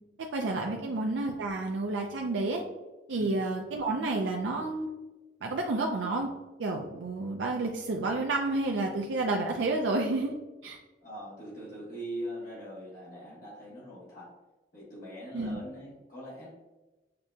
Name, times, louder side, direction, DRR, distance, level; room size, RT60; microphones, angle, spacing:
voice 1, 0.3-2.6 3.1-4.9 5.4-6.3 6.6-10.3 10.6-10.8 15.3-15.6, right 2 dB, 90° right, 1 dB, 0.4 m, -30 dB
voice 2, 3.1-3.5 11.0-14.4 14.7-16.5, equal, 50° left, -8 dB, 1.2 m, -42 dB
6.6 x 2.7 x 2.2 m, 1.1 s
head